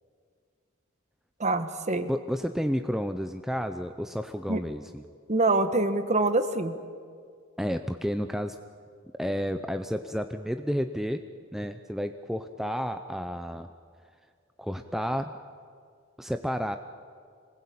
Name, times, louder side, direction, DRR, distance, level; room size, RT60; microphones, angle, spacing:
voice 1, 1.4-2.1 4.5-4.6 5.3-6.8, right 2 dB, 30° right, 10 dB, 1.3 m, -25 dB
voice 2, 2.1-5.0 7.6-8.6 9.2-11.2 11.5-13.7 14.6-15.3 16.2-16.8, equal, ahead, 7 dB, 0.6 m, -31 dB
26.0 x 20.0 x 8.6 m, 2.1 s
head